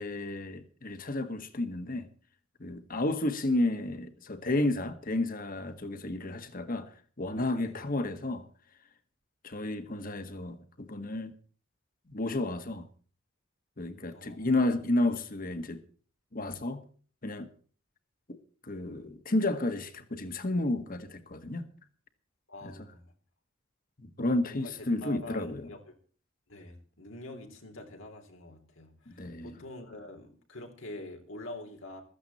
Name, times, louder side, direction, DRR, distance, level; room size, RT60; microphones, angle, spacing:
voice 1, 0.0-2.1 2.6-6.9 7.2-8.5 9.4-11.3 12.1-12.9 13.8-15.8 16.3-16.8 17.2-17.5 18.3-18.4 18.6-21.7 22.6-22.7 24.0-25.7 29.1-29.5, left 2 dB, 45° left, 1.7 m, -31 dB
voice 2, 14.1-14.5 22.5-23.1 24.5-26.0 26.5-32.0, left 1 dB, 85° left, 3.5 m, -45 dB
16.0 x 13.5 x 4.3 m
head